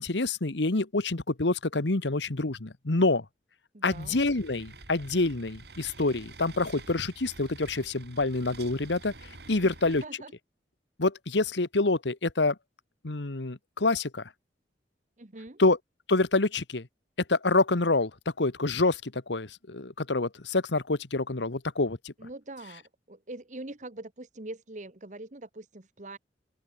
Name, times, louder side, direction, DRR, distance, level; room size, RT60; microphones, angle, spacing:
voice 1, 0.0-3.2 3.8-10.0 11.0-12.5 13.0-14.3 15.6-15.8 16.1-16.9 17.3-22.1, left 2 dB, 80° left, 1.4 m, -27 dB
voice 2, 3.7-4.2 9.6-9.7 10.0-10.3 15.2-15.6 22.2-26.2, right 2 dB, 45° right, 1.4 m, -43 dB
sound 1, 3.9-10.0, right 3 dB, 65° right, 3.6 m, -48 dB
open air
head